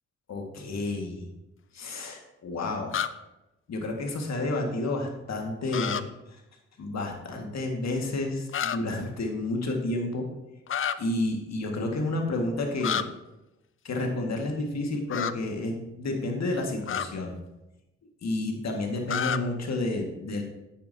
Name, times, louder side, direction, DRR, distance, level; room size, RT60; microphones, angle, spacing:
voice 1, 0.3-1.3 1.7-3.0 3.7-6.4 6.8-10.3 11.0-13.0 13.8-17.3 18.2-20.4, left 2 dB, 60° left, 2 dB, 1.9 m, -30 dB
sound 1, 2.9-3.1 5.7-6.0 8.5-8.8 10.7-11.0 12.8-13.0 15.1-15.3 16.8-17.1 19.1-19.4, left 9 dB, 40° left, 0.5 m, -28 dB
9.0 x 8.7 x 2.8 m, 0.95 s
hypercardioid pair, 45°, 31 cm